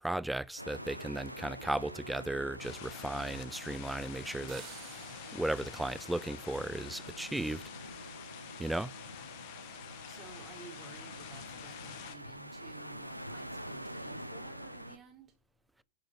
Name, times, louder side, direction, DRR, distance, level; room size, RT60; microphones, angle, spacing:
voice 1, 0.0-4.7 5.3-7.6 8.6-8.9, right 1 dB, 5° right, 0.4 m, -35 dB
sound 1, 0.6-15.0, equal, 90° right, 1.0 m, -47 dB
sound 2, 2.6-12.1, left 10 dB, 50° left, 1.8 m, -48 dB
sound 3, 4.5-7.3, right 15 dB, 40° right, 1.0 m, -54 dB
voice 2, 10.1-15.3, right 5 dB, 25° right, 3.9 m, -55 dB
11.0 x 6.4 x 6.3 m
figure-of-eight pair, 90°, 0 cm